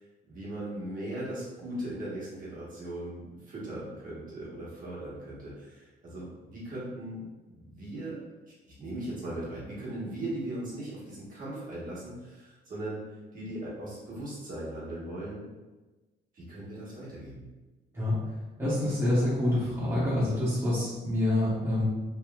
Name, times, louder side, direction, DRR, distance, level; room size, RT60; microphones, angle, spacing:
voice 1, 0.3-8.2 8.8-13.0 13.3-15.4 16.3-17.5 17.9-18.0, right 1 dB, 45° right, -7 dB, 1.2 m, -38 dB
voice 2, 18.6-21.8, left 1 dB, 10° right, -8 dB, 0.8 m, -27 dB
3.0 x 2.7 x 2.3 m, 1.2 s
cardioid pair, 120°, 19 cm